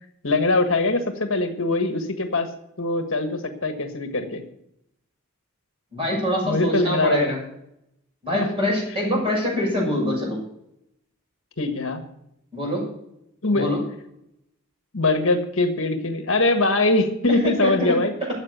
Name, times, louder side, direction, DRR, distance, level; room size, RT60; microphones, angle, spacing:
voice 1, 0.2-2.5 2.8-4.4 6.4-7.3 8.3-8.5 11.6-12.0 13.4-13.7 14.9-18.1, left 2 dB, 60° left, 6 dB, 1.6 m, -22 dB
voice 2, 5.9-7.4 8.2-10.4 12.5-12.9 13.5-13.8 17.4-18.0, left 1 dB, 25° right, -2 dB, 6.7 m, -24 dB
14.0 x 8.1 x 6.8 m, 0.78 s
head